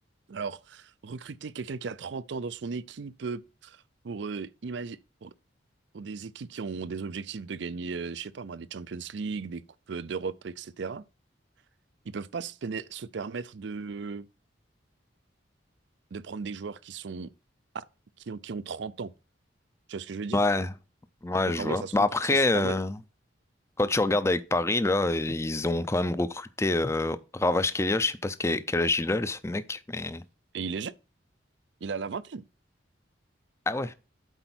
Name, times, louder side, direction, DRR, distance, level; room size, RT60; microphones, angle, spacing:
voice 1, 0.3-5.3 5.9-9.6 9.9-11.0 12.1-14.3 16.1-17.3 17.7-17.8 18.2-19.1 19.9-20.4 21.5-22.7 30.5-30.9 31.8-32.4, right 5 dB, 65° right, 0.5 m, -36 dB
voice 2, 20.3-20.7 21.2-23.0 23.8-30.2 33.7-33.9, left 2 dB, 15° left, 0.5 m, -26 dB
8.1 x 4.5 x 6.0 m
head